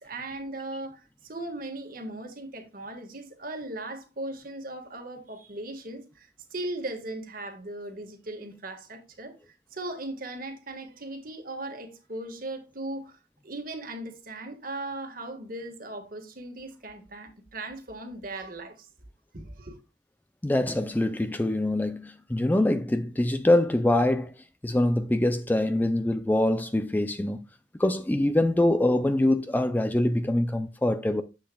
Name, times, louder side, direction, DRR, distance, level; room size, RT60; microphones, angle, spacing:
voice 1, 0.0-13.2 13.4-18.9 19.3-19.8, right 2 dB, 50° right, 1.6 m, -38 dB
voice 2, 20.4-24.3 24.6-27.5 27.8-31.2, left 1 dB, 10° left, 0.3 m, -24 dB
10.5 x 7.6 x 2.3 m
head